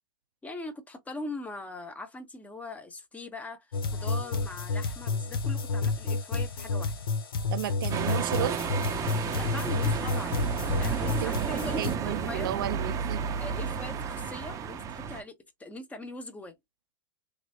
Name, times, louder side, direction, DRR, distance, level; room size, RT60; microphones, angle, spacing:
voice 1, 0.4-6.9 9.4-10.4 10.8-12.6 13.4-15.3 15.6-16.6, left 2 dB, 10° left, 0.9 m, -41 dB
sound 1, 3.7-12.0, left 4 dB, 80° left, 0.8 m, -30 dB
voice 2, 7.5-8.6 11.2-11.3 11.7-13.2, right 12 dB, 70° right, 0.5 m, -33 dB
sound 2, 7.9-15.2, right 6 dB, 30° right, 0.7 m, -32 dB
3.2 x 2.9 x 2.7 m
hypercardioid pair, 105°, 12 cm